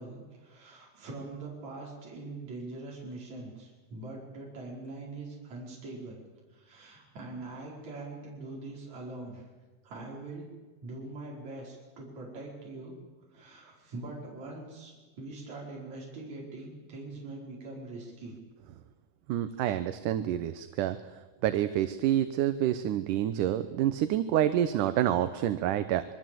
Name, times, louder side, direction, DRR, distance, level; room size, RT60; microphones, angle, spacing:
voice 1, 0.0-6.2 6.5-9.5 9.8-10.5 10.8-13.0 13.3-18.4, right 2 dB, 55° right, -3 dB, 6.1 m, -43 dB
voice 2, 19.3-21.0 21.4-26.0, right 11 dB, 75° right, 11 dB, 2.4 m, -28 dB
26.0 x 22.5 x 7.7 m, 1.3 s
omnidirectional pair, 3.8 m